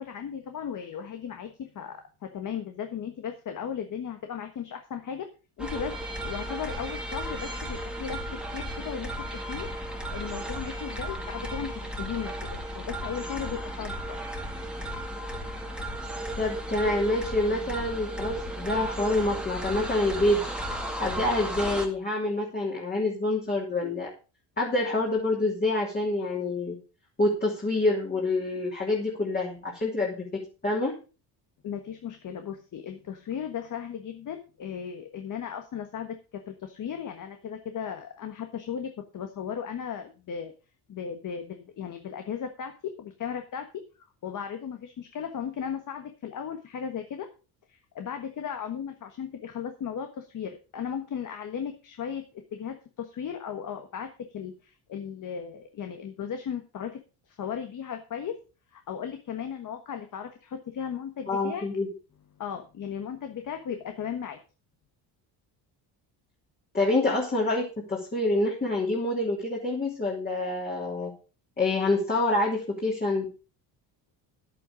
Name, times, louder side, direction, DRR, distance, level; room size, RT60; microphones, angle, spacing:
voice 1, 0.0-5.3 5.6-6.0 6.2-8.2 8.5-14.2 31.6-40.5 40.9-43.8 44.2-47.3 47.7-57.0 57.3-58.4 58.7-61.6 62.4-64.4, left 8 dB, 45° left, 6 dB, 1.4 m, -36 dB
sound 1, 5.6-21.9, right 1 dB, ahead, 2.0 m, -34 dB
voice 2, 16.4-20.5 21.0-24.1 24.6-26.7 27.2-30.9 61.3-61.9 66.7-71.1 71.6-73.2, left 2 dB, 20° left, -3 dB, 3.0 m, -27 dB
11.0 x 8.4 x 5.1 m, 0.33 s
cardioid pair, 140°, 45 cm